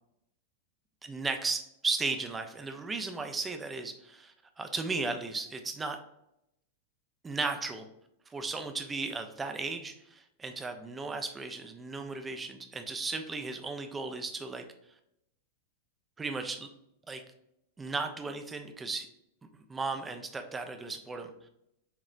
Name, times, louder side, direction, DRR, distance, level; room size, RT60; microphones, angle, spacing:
voice 1, 1.0-6.0 7.2-7.8 8.3-14.6 16.2-16.7 17.1-17.2 17.8-19.1 19.7-21.3, right 3 dB, 15° right, 6 dB, 0.6 m, -35 dB
6.6 x 3.1 x 2.5 m, 0.80 s
figure-of-eight pair, 95°, 0 cm